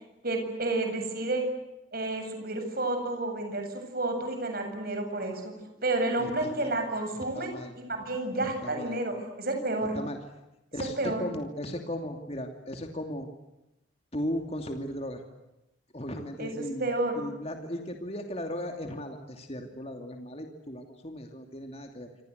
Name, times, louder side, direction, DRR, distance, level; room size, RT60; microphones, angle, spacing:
voice 1, 0.2-1.4 1.9-5.5 5.8-7.5 7.8-10.0 10.8-11.2 16.4-16.5 16.8-17.2, right 2 dB, 50° right, 5 dB, 7.8 m, -30 dB
voice 2, 6.2-6.7 7.3-7.7 8.4-8.9 9.9-10.2 10.7-13.3 14.1-15.2 15.9-16.9 17.1-22.1, equal, 30° left, 4 dB, 2.8 m, -36 dB
27.5 x 26.5 x 8.1 m, 0.93 s
head